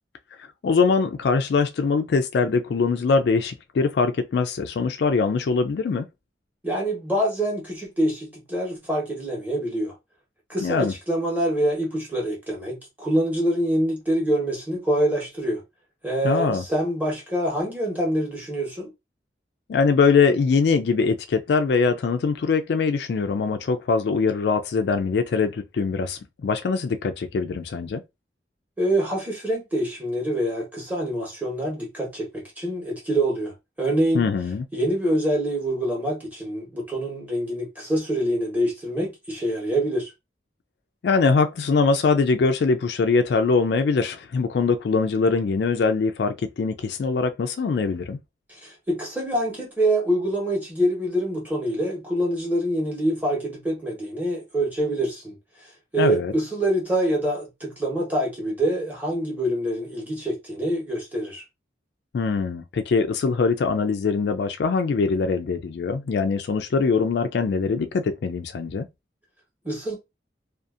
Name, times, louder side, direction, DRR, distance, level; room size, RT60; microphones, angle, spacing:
voice 1, 0.6-6.1 10.6-10.9 16.2-16.6 19.7-28.0 34.1-34.6 41.0-48.2 56.0-56.3 62.1-68.9, left 4 dB, 65° left, 0.3 m, -22 dB
voice 2, 6.6-9.9 10.5-15.6 16.0-18.9 28.8-34.3 34.7-40.1 48.5-55.4 55.9-61.4 69.6-70.0, right 1 dB, 10° right, 1.1 m, -25 dB
2.6 x 2.4 x 2.4 m
head